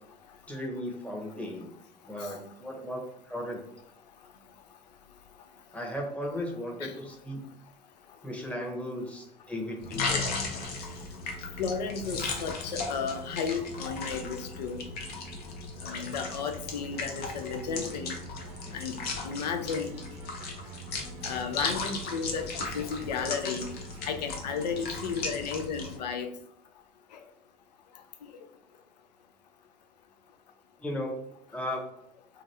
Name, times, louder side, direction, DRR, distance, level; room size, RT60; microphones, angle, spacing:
voice 1, 0.5-1.7 2.0-3.6 5.7-7.5 8.2-10.4 30.8-31.2 31.5-31.8, left 1 dB, 5° left, 0 dB, 0.9 m, -36 dB
sound 1, 9.8-26.0, left 3 dB, 50° left, 0.7 m, -36 dB
voice 2, 11.6-14.8 15.8-18.2 18.7-18.9 19.2-20.0 21.2-22.5 22.7-23.6 24.0-26.3, left 6 dB, 85° left, 7 dB, 0.4 m, -33 dB
sound 2, 16.9-25.2, right 4 dB, 55° right, 0.6 m, -51 dB
3.0 x 2.3 x 2.7 m, 0.74 s
hypercardioid pair, 70°, 20 cm